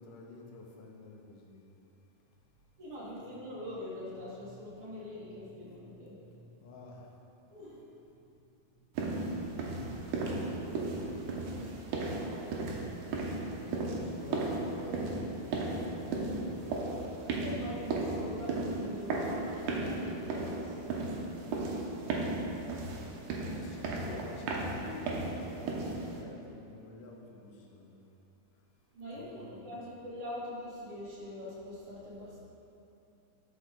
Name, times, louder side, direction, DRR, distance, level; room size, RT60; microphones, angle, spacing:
voice 1, 0.0-1.8 6.6-7.2 9.6-9.7 13.4-17.4 21.4-23.1 23.5-28.1 29.2-29.8, left 3 dB, 85° left, 0 dB, 2.6 m, -50 dB
voice 2, 2.8-6.7 7.5-7.8 17.4-20.9 28.9-32.4, left 1 dB, 45° right, -8 dB, 2.9 m, -43 dB
sound 1, 9.0-26.2, right 2 dB, 85° right, 2.5 m, -35 dB
11.5 x 6.2 x 3.8 m, 2.7 s
omnidirectional pair, 3.6 m